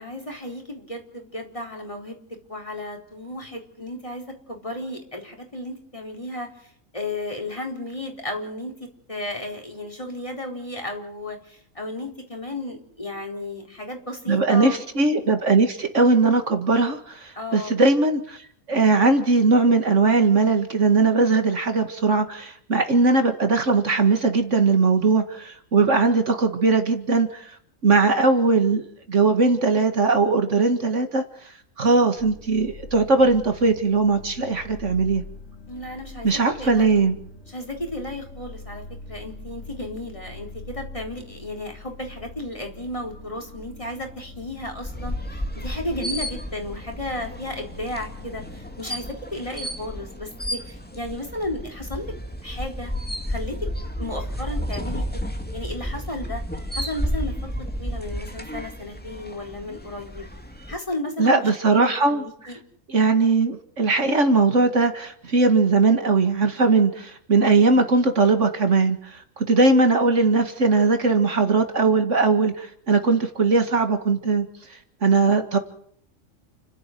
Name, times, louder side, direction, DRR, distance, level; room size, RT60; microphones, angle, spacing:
voice 1, 0.0-2.2 2.5-14.8 17.4-17.8 35.7-37.1 37.5-52.1 52.4-52.9 53.3-53.6 54.0-56.4 56.7-57.4 57.8-60.3 60.7-62.6, left 1 dB, 25° left, 3 dB, 4.4 m, -34 dB
voice 2, 14.3-18.4 18.7-27.5 27.8-31.2 31.8-35.2 36.2-37.1 61.2-62.2 62.9-74.5 75.0-75.6, right 3 dB, 70° right, 7 dB, 2.2 m, -19 dB
sound 1, 32.2-48.8, left 2 dB, 80° left, 5.5 m, -42 dB
sound 2, 44.8-60.8, equal, 5° left, 2.4 m, -32 dB
29.5 x 12.0 x 9.4 m, 0.64 s
omnidirectional pair, 1.3 m